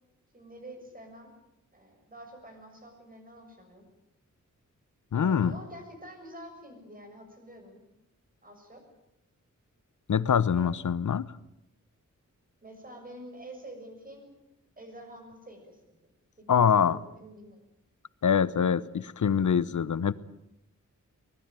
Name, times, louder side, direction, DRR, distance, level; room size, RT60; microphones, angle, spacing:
voice 1, 0.3-1.3 1.7-3.8 5.1-7.8 8.4-8.8 10.5-10.7 12.6-14.3 14.8-15.8 16.4-16.5 16.7-17.6, right 1 dB, 25° right, 4 dB, 6.9 m, -47 dB
voice 2, 5.1-5.6 10.1-11.3 16.5-17.0 18.2-20.1, left 7 dB, 70° left, 17 dB, 1.0 m, -24 dB
24.0 x 20.0 x 9.1 m, 0.85 s
wide cardioid pair, 160°, 31 cm